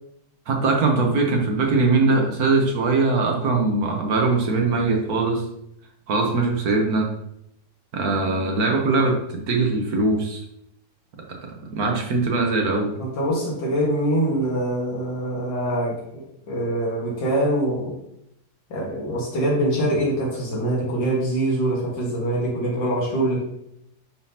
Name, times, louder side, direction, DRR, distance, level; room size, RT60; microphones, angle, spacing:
voice 1, 0.5-5.4 6.1-7.1 7.9-9.2 9.5-10.4 11.7-12.9, right 3 dB, 60° right, 1 dB, 1.5 m, -21 dB
voice 2, 13.0-17.9 18.7-23.4, right 1 dB, 85° left, -5 dB, 2.3 m, -24 dB
10.0 x 3.8 x 2.8 m, 0.77 s
omnidirectional pair, 1.9 m